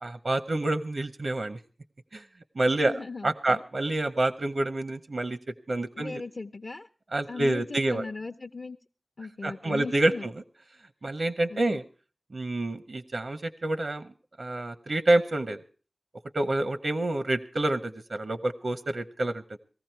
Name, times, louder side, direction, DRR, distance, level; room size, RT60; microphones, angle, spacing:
voice 1, 0.0-1.6 2.1-2.2 2.5-2.9 3.2-5.4 5.7-6.2 7.1-8.1 9.4-10.3 11.0-11.8 12.3-14.1 14.4-15.6 16.3-19.6, right 2 dB, 70° right, 10 dB, 0.7 m, -27 dB
voice 2, 2.8-3.6 6.0-6.9 7.3-8.8 9.2-10.3 11.5-11.8, left 3 dB, 55° left, 5 dB, 0.6 m, -38 dB
18.0 x 14.5 x 4.5 m, 0.38 s
wide cardioid pair, 65°, 0 cm